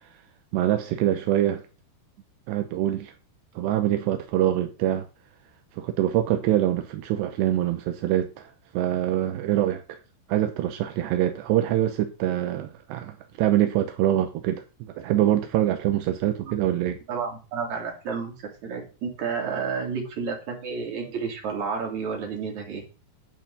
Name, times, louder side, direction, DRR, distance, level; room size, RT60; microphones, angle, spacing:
voice 1, 0.5-1.6 2.5-3.1 3.6-5.1 5.8-10.0 10.3-17.0, right 12 dB, 80° right, 3.0 m, -24 dB
voice 2, 17.1-18.3 18.6-22.8, right 5 dB, 45° right, 4.1 m, -31 dB
11.0 x 6.0 x 6.7 m
omnidirectional pair, 5.1 m